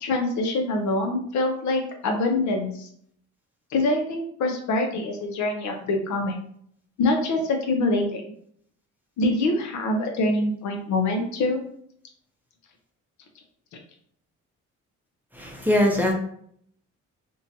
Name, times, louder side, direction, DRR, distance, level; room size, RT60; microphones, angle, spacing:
voice 1, 0.0-2.9 3.7-6.4 7.0-8.2 9.2-11.6, left 2 dB, 70° left, 3 dB, 0.7 m, -25 dB
voice 2, 15.3-16.1, left 1 dB, 5° right, -1 dB, 0.6 m, -21 dB
2.7 x 2.2 x 2.7 m, 0.64 s
cardioid pair, 90°, 30 cm